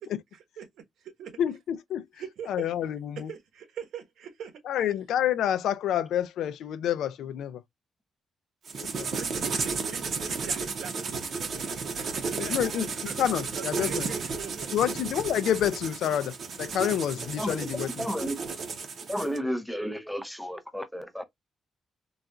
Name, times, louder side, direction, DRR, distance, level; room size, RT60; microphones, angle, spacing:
voice 1, 0.0-1.4 2.2-4.9 9.2-15.0, right 8 dB, 80° right, 1.1 m, -43 dB
voice 2, 1.4-2.0 2.5-3.3 4.7-7.6 8.7-9.1 12.4-12.8 13.2-14.1 14.7-18.0, left 10 dB, 80° left, 0.4 m, -28 dB
sound 1, 8.7-19.4, right 4 dB, 45° right, 0.7 m, -33 dB
voice 3, 17.4-18.4 19.1-21.2, equal, ahead, 0.5 m, -33 dB
4.0 x 2.3 x 2.2 m
cardioid pair, 170°, 0 cm